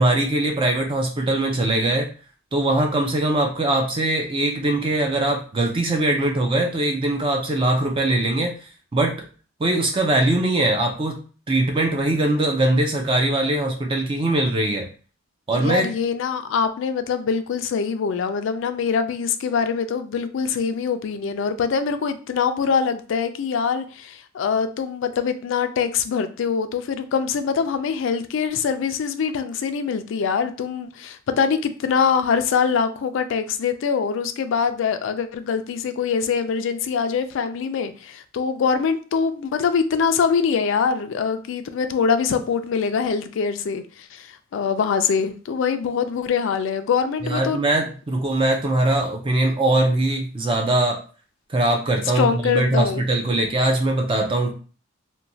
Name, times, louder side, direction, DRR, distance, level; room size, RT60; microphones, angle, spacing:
voice 1, 0.0-2.1 2.5-8.5 8.9-9.2 9.6-11.2 11.5-14.9 15.5-15.9 47.2-51.0 51.5-54.5, right 2 dB, 25° right, 0.4 m, -21 dB
voice 2, 15.5-47.6 52.2-53.0, left 6 dB, 65° left, 0.3 m, -23 dB
2.9 x 2.2 x 2.6 m
head